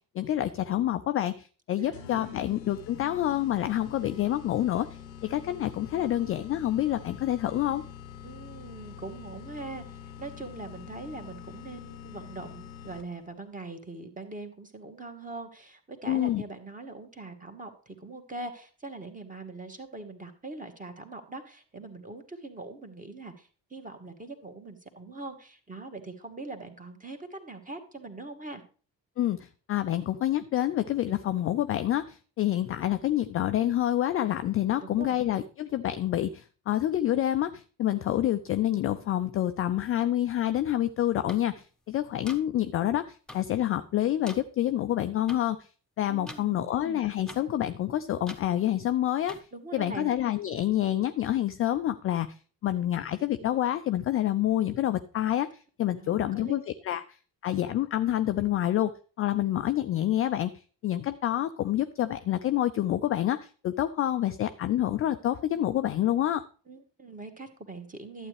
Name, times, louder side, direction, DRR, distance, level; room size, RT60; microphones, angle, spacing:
voice 1, 0.1-4.9 5.2-7.8 16.1-16.4 29.2-45.7 46.0-49.4 49.7-55.5 55.8-57.2 57.4-58.9 59.2-66.4, left 12 dB, 30° left, 10 dB, 0.4 m, -27 dB
voice 2, 1.8-2.4 8.2-9.8 10.2-28.6 34.8-35.2 46.1-46.7 49.5-50.1 56.0-56.6 66.7-68.3, right 3 dB, 15° right, 5 dB, 1.6 m, -42 dB
sound 1, 1.9-13.3, left 8 dB, 80° left, 0.8 m, -45 dB
sound 2, 41.3-41.4 42.3-42.4 43.3-43.4 44.3-44.4 45.3-45.4 46.3-46.4 47.3-47.4 48.3-48.4 49.3-49.4, left 1 dB, ahead, 1.1 m, -42 dB
11.5 x 8.0 x 3.3 m, 0.38 s
figure-of-eight pair, 50°, 50 cm